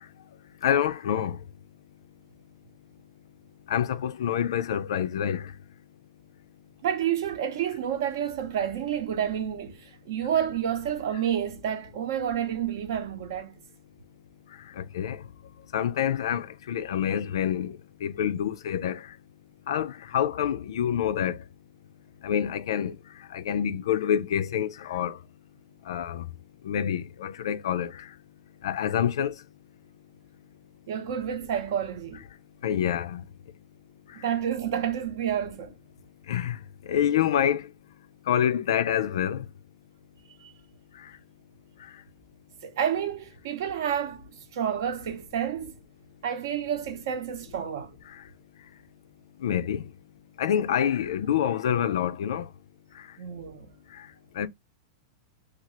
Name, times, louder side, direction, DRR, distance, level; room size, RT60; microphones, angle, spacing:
voice 1, 0.6-1.4 3.7-5.5 14.8-15.3 15.7-19.1 19.7-21.4 22.2-22.9 23.3-25.2 25.9-26.3 26.6-28.1 28.6-29.3 32.6-33.3 36.3-36.6 36.9-37.7 38.3-39.4 49.4-49.9 50.4-52.5 54.0-54.1 54.4-54.5, left 9 dB, 70° left, 0.4 m, -27 dB
voice 2, 6.8-13.5 30.9-32.2 34.1-35.7 40.4-40.5 42.6-45.7 46.2-47.9 53.2-53.7, right 9 dB, 50° right, 0.7 m, -29 dB
2.9 x 2.4 x 2.9 m
supercardioid pair, 175°, 3 cm